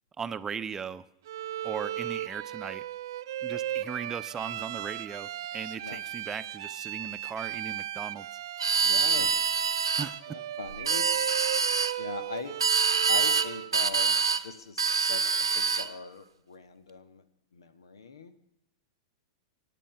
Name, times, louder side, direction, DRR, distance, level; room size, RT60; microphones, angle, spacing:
voice 1, 0.2-1.0 1.6-2.8 3.4-8.3 10.0-10.1, right 6 dB, 20° right, 13 dB, 0.7 m, -37 dB
Bowed string instrument, 1.3-13.8, right 12 dB, 60° right, 0.6 m, -36 dB
sound 1, 8.6-10.1 10.7-11.9 12.6-13.5 13.7-14.4 14.8-15.9, right 5 dB, 85° right, 0.9 m, -25 dB
voice 2, 8.8-9.3 10.3-11.1 12.0-12.5 13.1-14.1 14.4-17.2 17.5-18.3, left 5 dB, 75° left, 13 dB, 1.3 m, -40 dB
23.5 x 9.2 x 5.7 m, 0.81 s
figure-of-eight pair, 100°, 2 cm